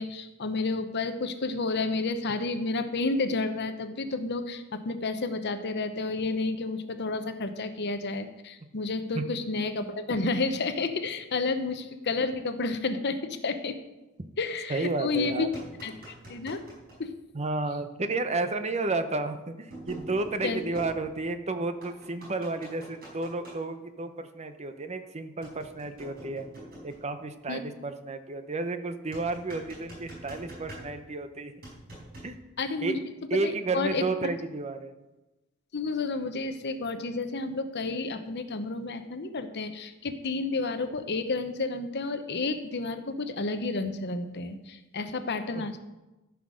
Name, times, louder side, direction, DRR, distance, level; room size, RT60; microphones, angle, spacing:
voice 1, 0.0-13.8 14.4-15.5 15.8-16.6 17.0-17.1 20.4-20.6 27.5-27.6 32.6-33.0 33.4-34.3 35.7-45.8, left 3 dB, 55° left, 9 dB, 0.9 m, -31 dB
voice 2, 14.7-15.6 17.3-26.5 26.8-31.5 32.2-32.4 32.8-32.9 33.3-34.9 45.5-45.7, right 3 dB, 30° right, 9 dB, 0.7 m, -32 dB
sound 1, 15.2-17.0 18.4-18.5 19.7-21.4 21.8-23.6 25.4-27.1 29.1-31.2 31.6-32.4, right 1 dB, 45° right, 4.8 m, -45 dB
13.5 x 5.9 x 6.3 m, 1.0 s
head